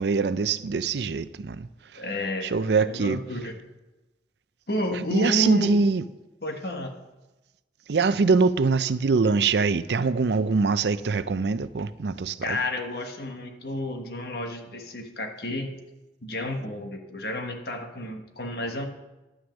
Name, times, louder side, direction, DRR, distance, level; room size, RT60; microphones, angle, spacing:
voice 1, 0.0-1.7 2.4-3.2 5.1-6.0 7.9-12.6, right 4 dB, 75° right, 0.5 m, -23 dB
voice 2, 1.9-3.6 4.7-5.8 6.4-6.9 12.4-15.7 16.2-18.8, left 1 dB, 60° left, 1.4 m, -31 dB
11.0 x 6.2 x 7.1 m
head